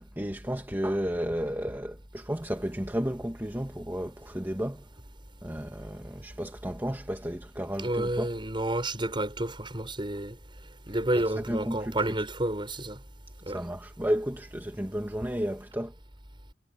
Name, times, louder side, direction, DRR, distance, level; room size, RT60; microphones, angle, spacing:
voice 1, 0.0-4.9 5.4-8.3 11.2-12.0 13.5-15.9, equal, 15° right, 2.0 m, -32 dB
voice 2, 7.8-10.4 10.9-13.0 13.5-13.6, right 1 dB, 30° right, 6.3 m, -30 dB
head